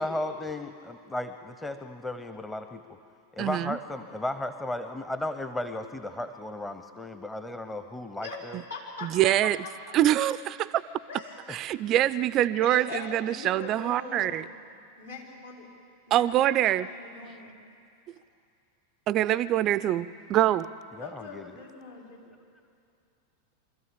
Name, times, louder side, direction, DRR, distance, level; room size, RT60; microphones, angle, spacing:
voice 1, 0.0-2.8 3.3-8.6 11.5-11.6 20.9-21.6, left 1 dB, 10° left, 8 dB, 0.9 m, -35 dB
voice 2, 3.4-3.8 9.0-9.6 9.9-10.8 11.5-14.4 16.1-16.9 19.1-20.7, right 13 dB, 35° right, 16 dB, 0.5 m, -24 dB
voice 3, 8.7-9.1 9.4-9.9 11.1-11.5 12.6-14.5 15.0-15.7 16.1-17.5 21.0-22.3, left 4 dB, 75° left, -6 dB, 5.0 m, -42 dB
24.5 x 13.5 x 8.7 m, 2.4 s
figure-of-eight pair, 90°, 0 cm